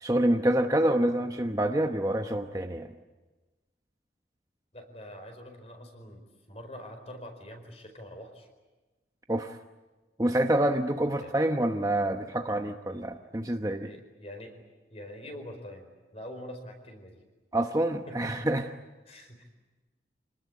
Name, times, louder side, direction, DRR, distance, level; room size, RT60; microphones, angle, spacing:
voice 1, 0.0-2.9 9.3-9.6 10.2-13.9 17.5-18.6, right 1 dB, 20° right, 5 dB, 0.9 m, -27 dB
voice 2, 4.7-8.5 11.2-11.3 13.8-17.2 18.1-18.3 19.1-19.4, left 1 dB, 35° left, 5 dB, 4.7 m, -45 dB
27.0 x 19.5 x 9.7 m, 1.2 s
head